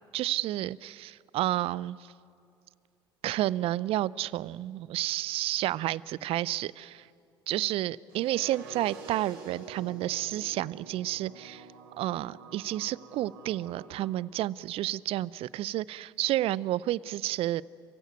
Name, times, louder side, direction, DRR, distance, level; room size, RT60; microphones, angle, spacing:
voice 1, 0.1-2.1 3.2-7.1 7.5-11.7 12.0-17.6, right 14 dB, 55° right, 22 dB, 0.5 m, -31 dB
sound 1, 8.1-14.1, right 4 dB, 75° right, 3.6 m, -48 dB
27.0 x 15.5 x 9.4 m, 2.4 s
hypercardioid pair, 60°, 12 cm